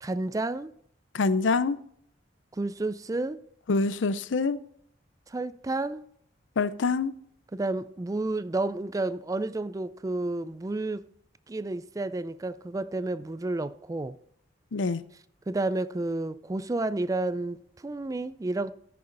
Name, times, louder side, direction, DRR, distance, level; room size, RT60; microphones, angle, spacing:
voice 1, 0.0-0.7 2.5-3.4 5.3-6.1 7.5-11.0 11.5-14.2 15.5-18.7, right 2 dB, 20° right, 0.4 m, -31 dB
voice 2, 1.1-1.8 3.7-4.6 6.6-7.1 14.7-15.0, left 4 dB, 85° left, 0.5 m, -25 dB
14.0 x 6.9 x 3.9 m
head